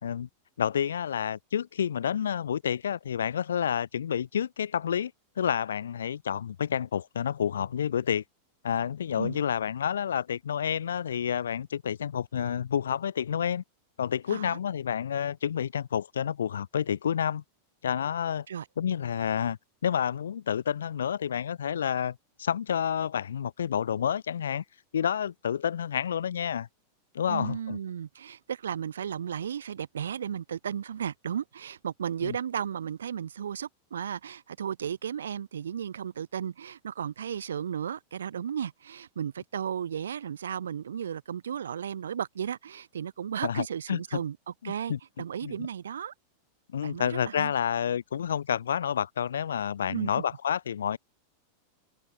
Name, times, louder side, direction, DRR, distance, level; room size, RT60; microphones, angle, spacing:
voice 1, 0.6-5.1 5.4-8.2 8.6-13.6 14.0-17.4 17.8-18.5 18.8-24.6 24.9-26.7 27.1-27.8 32.2-32.4 43.4-44.2 44.6-45.0 45.4-45.6 46.7-51.0, left 8 dB, 65° left, 3.9 m, -29 dB
voice 2, 27.3-46.1 46.8-47.5 49.9-50.2, right 8 dB, 65° right, 5.2 m, -34 dB
open air
figure-of-eight pair, 90°, 0 cm